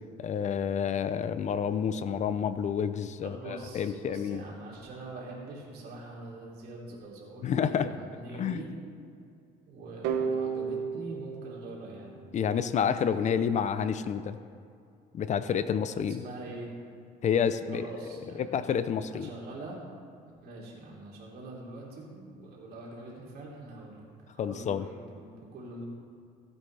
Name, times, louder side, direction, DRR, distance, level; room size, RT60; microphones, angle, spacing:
voice 1, 0.2-4.4 7.4-7.9 8.4-8.6 12.3-14.4 15.1-16.2 17.2-17.9 18.4-19.3 24.4-24.9, left 7 dB, 45° left, 12 dB, 0.5 m, -29 dB
voice 2, 3.2-8.7 9.7-12.2 16.1-16.7 17.7-18.5 19.1-19.8 20.4-25.8, right 2 dB, 70° right, -4 dB, 3.1 m, -44 dB
sound 1, 10.0-12.8, right 6 dB, 85° right, 0.9 m, -34 dB
15.5 x 8.5 x 3.4 m, 2.4 s
cardioid pair, 110°, 17 cm